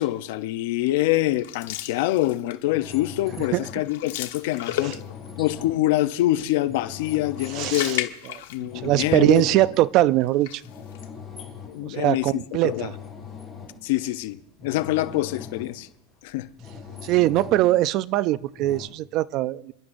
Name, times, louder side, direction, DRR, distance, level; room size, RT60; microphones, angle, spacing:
voice 1, 0.0-5.0 5.4-8.1 8.5-9.5 11.6-12.9 13.8-15.9 16.2-16.5, left 16 dB, 60° left, 0.6 m, -25 dB
sound 1, 1.4-2.7 3.1-3.3 3.6-5.4 7.1-8.9 9.2-9.3 10.2-11.0, left 13 dB, 75° left, 1.1 m, -34 dB
sound 2, 2.7-8.0 8.4-10.4 10.6-11.9 12.2-15.9 16.3-17.8 18.6-18.9, left 6 dB, 5° left, 6.1 m, -41 dB
voice 2, 7.6-8.0 8.8-10.5 11.8-12.9 17.0-19.7, right 16 dB, 40° right, 0.4 m, -21 dB
28.5 x 11.5 x 2.6 m
supercardioid pair, 160°, 0 cm